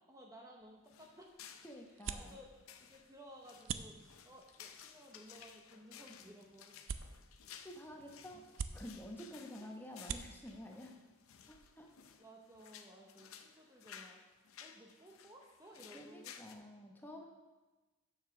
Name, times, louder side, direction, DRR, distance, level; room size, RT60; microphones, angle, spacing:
voice 1, 0.1-1.3 2.1-2.5 2.8-7.1 8.3-8.5 8.8-9.0 9.6-9.7 10.0-10.1 12.2-14.2 14.6-16.3, equal, 15° right, 0 dB, 0.7 m, -57 dB
sound 1, 0.6-12.1, right 6 dB, 65° right, 0.4 m, -50 dB
sound 2, 0.9-16.5, left 8 dB, 90° left, 0.6 m, -57 dB
voice 2, 1.6-2.4 6.2-6.3 7.6-8.4 8.7-10.9 11.5-11.9 15.9-17.2, equal, 10° left, 1 dB, 0.9 m, -50 dB
7.1 x 6.8 x 5.9 m, 1.2 s
head